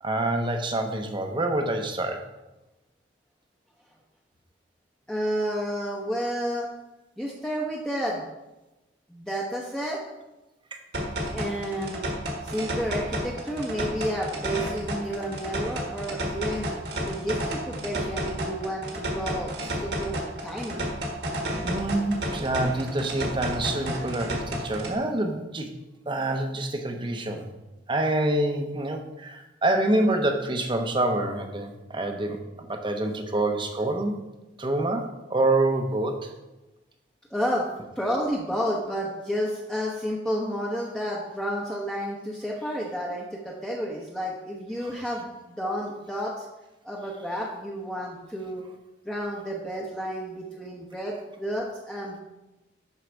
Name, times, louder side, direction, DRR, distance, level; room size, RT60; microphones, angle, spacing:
voice 1, 0.0-2.2 20.7-20.8 21.6-25.7 26.1-27.5 27.9-34.2 34.6-36.3 44.8-45.0, right 2 dB, 25° right, 4 dB, 0.9 m, -27 dB
voice 2, 5.1-6.7 7.2-8.2 9.1-10.0 11.3-12.1 12.4-16.7 17.0-20.9 37.3-37.7 38.0-46.5 46.8-48.6 49.1-52.2, equal, 5° left, -3 dB, 0.9 m, -31 dB
sound 1, 10.9-24.9, equal, 65° right, 1.8 m, -32 dB
11.5 x 4.8 x 4.6 m, 1.0 s
head